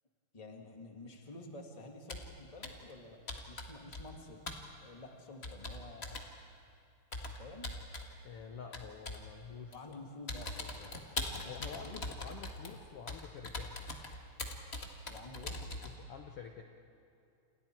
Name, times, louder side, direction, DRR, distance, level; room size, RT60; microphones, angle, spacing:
voice 1, 0.3-3.2 3.5-4.4 4.8-6.3 7.4-7.7 9.7-11.0 11.3-12.0 15.1-15.6, left 2 dB, 15° left, 2 dB, 1.3 m, -50 dB
Computer keyboard, 2.1-2.3 2.6-2.9 3.3-4.2 4.5-4.7 5.4-6.3 7.1-8.1 8.7-9.3 9.7-9.9 10.3-16.0, left 2 dB, 50° left, 0.7 m, -42 dB
voice 2, 8.2-9.9 11.4-13.7 15.8-16.6, left 6 dB, 80° left, 3 dB, 1.3 m, -48 dB
28.5 x 28.5 x 4.6 m, 2.6 s
omnidirectional pair, 4.2 m